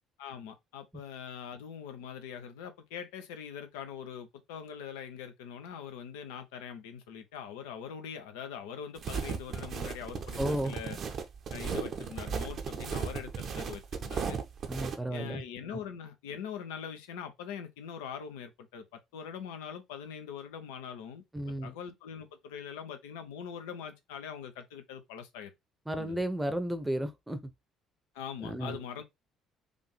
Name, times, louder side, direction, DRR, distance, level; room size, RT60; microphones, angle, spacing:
voice 1, 0.2-11.0 11.5-14.4 15.1-21.2 21.6-25.5 26.0-26.2 28.1-29.0, left 8 dB, 65° left, 0.7 m, -42 dB
sound 1, 9.0-15.0, right 6 dB, 45° right, 0.8 m, -36 dB
voice 2, 10.4-10.7 14.7-15.4 21.3-21.7 25.9-27.4 28.4-28.8, right 1 dB, 10° right, 0.8 m, -33 dB
5.0 x 2.6 x 3.3 m
figure-of-eight pair, 50°, 0 cm